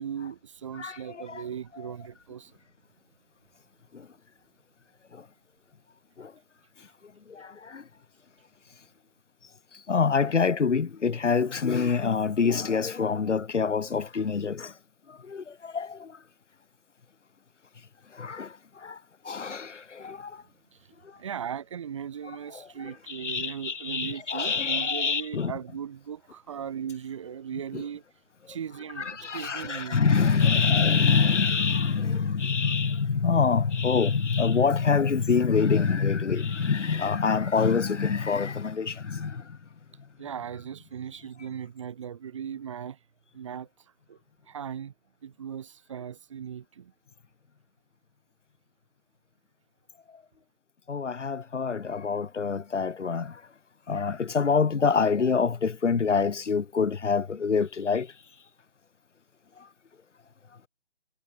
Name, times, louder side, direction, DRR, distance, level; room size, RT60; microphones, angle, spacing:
voice 1, 0.0-2.5 20.7-20.8 21.2-28.0 28.5-30.1 40.2-43.0 43.3-43.7 44.1-44.2 44.5-44.9 45.2-46.9, right 8 dB, 25° right, 2.7 m, -38 dB
voice 2, 0.8-1.4 6.2-6.3 7.3-7.8 9.9-14.7 15.3-16.1 18.2-18.5 18.8-19.0 19.3-20.3 22.5-25.5 27.7-27.8 29.0-39.4 50.9-53.3 53.9-58.1, left 5 dB, 80° left, 0.9 m, -25 dB
figure-of-eight pair, 160°, 36 cm